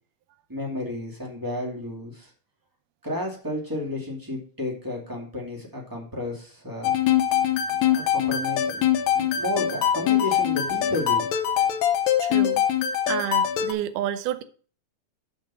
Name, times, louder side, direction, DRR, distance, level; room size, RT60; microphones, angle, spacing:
voice 1, 0.5-2.3 3.0-6.9 7.9-8.8 9.1-11.2, left 1 dB, 10° right, 1.8 m, -32 dB
sound 1, 6.8-13.7, left 10 dB, 75° left, 1.9 m, -23 dB
voice 2, 12.2-12.7 13.1-14.4, right 11 dB, 80° right, 2.2 m, -29 dB
6.8 x 5.8 x 5.6 m
omnidirectional pair, 3.8 m